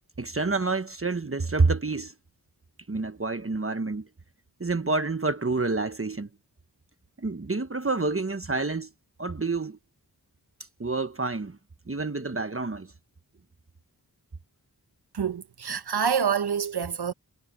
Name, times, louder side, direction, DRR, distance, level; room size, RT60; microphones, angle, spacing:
voice 1, 0.2-2.1 2.9-4.1 4.6-6.3 7.2-8.9 9.2-9.8 10.8-11.6 11.9-12.9, right 3 dB, 35° right, 1.1 m, -28 dB
voice 2, 15.1-17.1, right 7 dB, 75° right, 1.0 m, -27 dB
wide cardioid pair, 40°, 39 cm